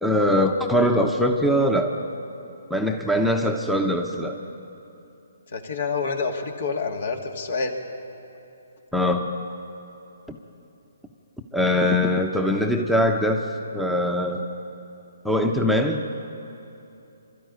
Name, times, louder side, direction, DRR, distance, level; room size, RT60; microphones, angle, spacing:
voice 1, 0.0-1.9 2.7-4.4 8.9-9.3 10.3-10.4 11.5-13.4 13.7-14.4 15.2-16.1, left 1 dB, ahead, 2 dB, 1.0 m, -22 dB
voice 2, 5.5-7.8, left 4 dB, 60° left, 4 dB, 2.4 m, -27 dB
25.0 x 13.0 x 9.7 m, 2.8 s
hypercardioid pair, 145°, 0 cm